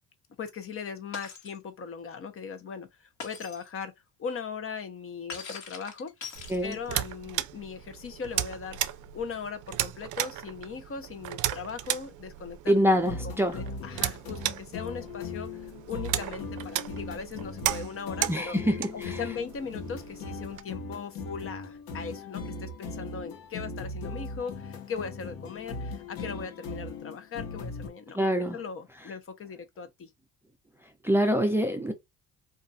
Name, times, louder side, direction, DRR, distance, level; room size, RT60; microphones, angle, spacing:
voice 1, 0.4-3.9 4.2-6.3 6.6-12.9 13.2-18.6 18.9-28.2 28.5-30.1, left 6 dB, 40° left, 0.8 m, -39 dB
Shatter, 1.1-1.6 3.2-3.7 5.3-7.0, left 5 dB, 55° left, 1.3 m, -42 dB
sound 1, 6.3-20.6, right 13 dB, 65° right, 0.5 m, -35 dB
voice 2, 12.7-13.6 18.3-19.2 28.1-28.6 31.0-31.9, equal, 5° right, 0.5 m, -25 dB
sound 2, 12.9-27.9, left 3 dB, 85° left, 1.0 m, -39 dB
2.5 x 2.3 x 4.0 m
cardioid pair, 100°, 34 cm